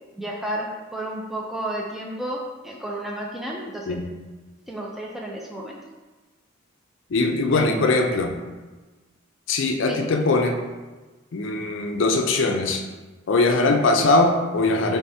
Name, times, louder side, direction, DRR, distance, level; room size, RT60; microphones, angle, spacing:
voice 1, 0.1-2.4 2.6-3.9 4.7-5.8 7.5-7.8 9.9-10.0, right 1 dB, ahead, -3 dB, 0.4 m, -32 dB
voice 2, 7.1-8.3 9.5-10.6 11.3-12.8 13.3-15.0, left 2 dB, 60° left, 4 dB, 0.5 m, -21 dB
3.6 x 3.4 x 4.2 m, 1.2 s
head